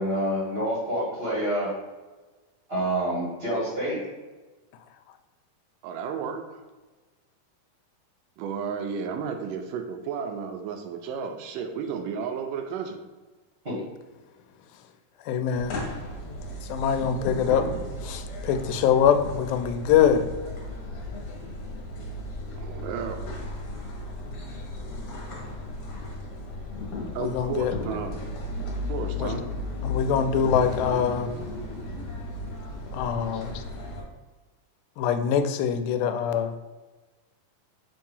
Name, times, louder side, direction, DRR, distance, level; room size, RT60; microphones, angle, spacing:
voice 1, 0.0-1.7 2.7-4.0 13.6-13.8, right 1 dB, 35° right, -7 dB, 0.9 m, -27 dB
voice 2, 5.8-6.6 8.4-13.0 22.5-23.2 27.1-28.1 28.9-29.5, right 6 dB, 80° right, 6 dB, 2.1 m, -33 dB
voice 3, 15.3-15.8 16.3-16.4 16.7-17.6 18.0-20.2 27.2-27.7 29.2-29.3 29.8-31.3 32.9-33.5 35.0-36.5, left 8 dB, 85° left, 8 dB, 2.4 m, -23 dB
sound 1, 15.5-34.0, left 2 dB, 55° left, 2.2 m, -35 dB
7.3 x 2.8 x 5.4 m, 1.2 s
omnidirectional pair, 4.1 m